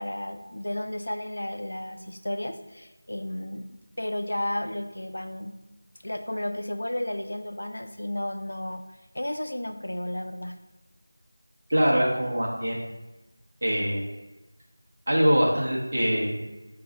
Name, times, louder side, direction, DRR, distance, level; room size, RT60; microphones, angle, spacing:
voice 1, 0.0-5.5 6.0-8.8 9.1-10.6, left 1 dB, 85° left, 7 dB, 0.3 m, -33 dB
voice 2, 11.7-12.9 13.6-14.1 15.1-16.5, equal, 45° right, -3 dB, 0.7 m, -23 dB
2.6 x 2.3 x 4.0 m, 1.1 s
figure-of-eight pair, 180°, 0 cm